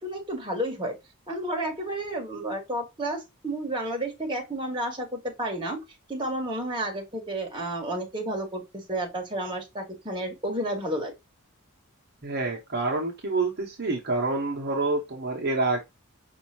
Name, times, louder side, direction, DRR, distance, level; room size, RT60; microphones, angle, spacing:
voice 1, 0.0-1.0 1.3-5.8 6.1-11.1, right 1 dB, 20° right, 1.4 m, -31 dB
voice 2, 12.2-15.8, right 3 dB, 50° right, 1.0 m, -27 dB
5.4 x 2.8 x 2.8 m
head